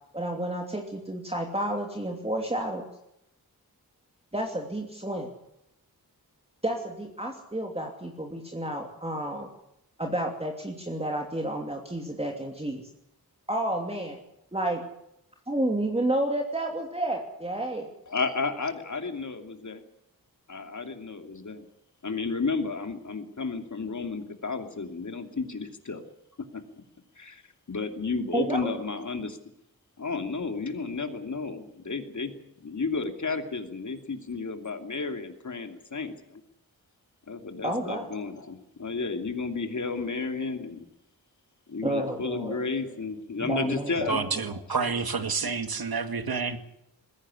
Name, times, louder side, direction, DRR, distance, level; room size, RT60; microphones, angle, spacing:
voice 1, 0.1-2.8 4.3-5.3 6.6-9.5 10.0-12.8 13.5-14.2 14.5-14.8 15.5-17.9 28.3-28.7 37.6-38.1 41.8-42.6 43.4-44.6, right 1 dB, 15° right, 2 dB, 2.8 m, -30 dB
voice 2, 18.1-19.8 20.5-21.7 22.0-26.0 27.2-27.4 27.7-29.4 30.0-32.3 32.6-36.4 37.3-40.8 41.7-44.2 44.7-44.9 45.4-45.5, left 4 dB, 50° left, 6 dB, 2.8 m, -32 dB
voice 3, 44.1-46.6, right 5 dB, 75° right, 9 dB, 2.1 m, -29 dB
21.0 x 16.0 x 9.9 m, 0.80 s
wide cardioid pair, 105°, 36 cm